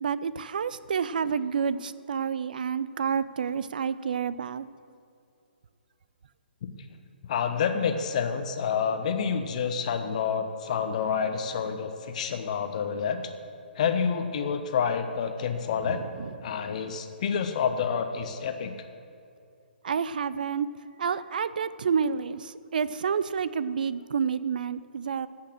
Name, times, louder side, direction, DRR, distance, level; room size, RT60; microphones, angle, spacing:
voice 1, 0.0-4.6 15.8-16.3 19.8-20.7 21.0-25.3, right 6 dB, 55° right, 16 dB, 0.5 m, -29 dB
voice 2, 7.3-13.2 13.8-16.0 16.4-18.7, left 6 dB, 40° left, 7 dB, 1.0 m, -28 dB
15.0 x 5.8 x 7.6 m, 2.4 s
figure-of-eight pair, 125°, 6 cm